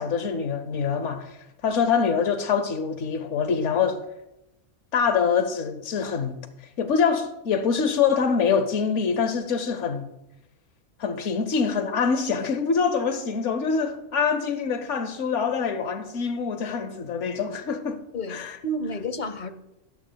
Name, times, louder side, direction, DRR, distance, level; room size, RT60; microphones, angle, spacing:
voice 1, 0.0-1.4 1.6-4.0 4.9-6.4 6.8-10.1 11.0-18.0 18.3-18.6, left 6 dB, 80° left, 1.1 m, -25 dB
voice 2, 18.1-19.5, equal, 45° left, 0.9 m, -31 dB
17.0 x 9.6 x 2.2 m
omnidirectional pair, 1.2 m